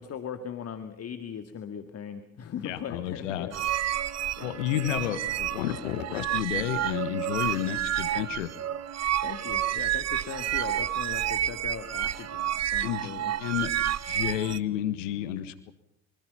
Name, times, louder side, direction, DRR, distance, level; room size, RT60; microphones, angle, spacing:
voice 1, 0.0-3.6 4.3-5.0 9.2-13.7, left 8 dB, 40° left, 8 dB, 2.1 m, -39 dB
voice 2, 2.6-3.5 4.4-8.5 12.8-13.1 13.4-13.7 14.1-15.7, left 12 dB, 75° left, 13 dB, 1.6 m, -31 dB
sound 1, 3.5-14.6, right 11 dB, 40° right, 1.4 m, -30 dB
25.5 x 25.0 x 5.7 m, 0.72 s
figure-of-eight pair, 60°, 38 cm